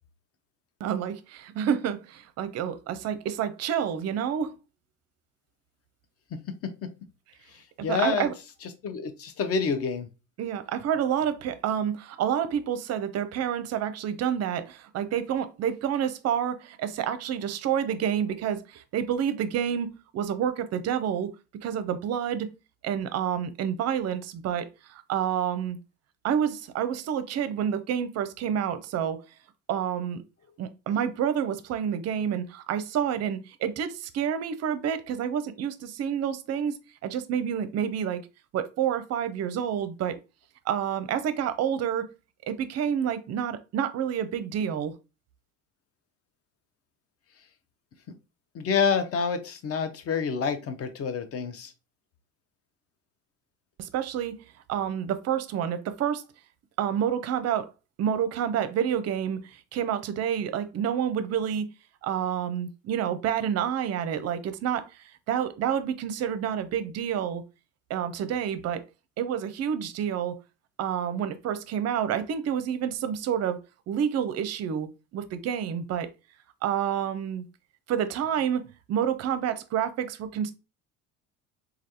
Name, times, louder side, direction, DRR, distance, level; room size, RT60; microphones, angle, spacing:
voice 1, 0.8-4.5 7.8-8.3 10.4-21.3 21.6-22.5 22.8-25.8 26.2-29.2 29.7-30.2 30.6-36.8 37.0-38.3 38.5-40.2 40.7-42.1 42.5-44.9 53.8-54.4 54.7-56.2 56.8-57.7 58.0-61.7 62.0-64.9 65.3-67.4 67.9-68.8 69.2-70.4 70.8-73.6 73.9-76.1 76.6-77.4 77.9-80.5, right 9 dB, 40° right, 0.5 m, -28 dB
voice 2, 7.8-8.3 8.6-10.1 48.5-51.7, left 5 dB, 40° left, 0.6 m, -28 dB
3.3 x 2.4 x 2.6 m
hypercardioid pair, 65°, 38 cm